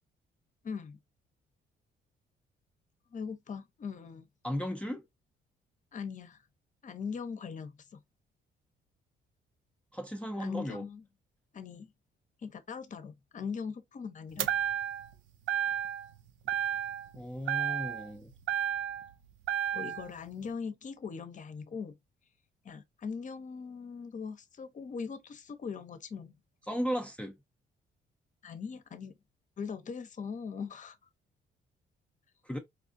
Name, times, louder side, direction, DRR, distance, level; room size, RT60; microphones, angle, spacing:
voice 1, 0.6-1.0 3.1-4.3 5.9-6.4 6.8-8.0 10.4-11.0 11.5-11.9 12.4-14.5 19.7-21.9 22.6-26.3 28.4-29.1 29.6-31.0, left 6 dB, 40° left, 0.7 m, -40 dB
voice 2, 4.4-5.0 9.9-10.8 17.1-18.3 26.7-27.4 32.4-32.6, equal, 5° left, 0.6 m, -35 dB
sound 1, 14.4-15.1 15.5-16.1 16.5-17.2 17.5-19.1 19.5-20.1, right 9 dB, 80° right, 0.5 m, -32 dB
4.3 x 2.4 x 2.5 m
cardioid pair, 90°, 20 cm